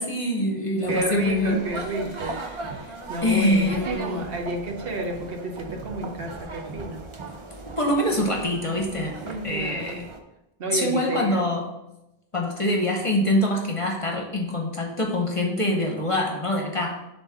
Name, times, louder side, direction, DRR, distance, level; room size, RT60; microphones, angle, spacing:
voice 1, 0.0-1.6 2.4-2.9 3.2-4.3 7.8-9.2 9.4-10.0 10.7-11.6 12.3-17.0, left 1 dB, 35° left, 0 dB, 0.9 m, -25 dB
sound 1, 0.8-10.2, right 3 dB, 35° right, 0.5 m, -37 dB
voice 2, 0.9-2.4 3.1-7.1 9.2-10.1 10.6-11.5, right 1 dB, 65° right, 3 dB, 1.0 m, -30 dB
7.3 x 2.8 x 5.7 m, 0.91 s
omnidirectional pair, 1.1 m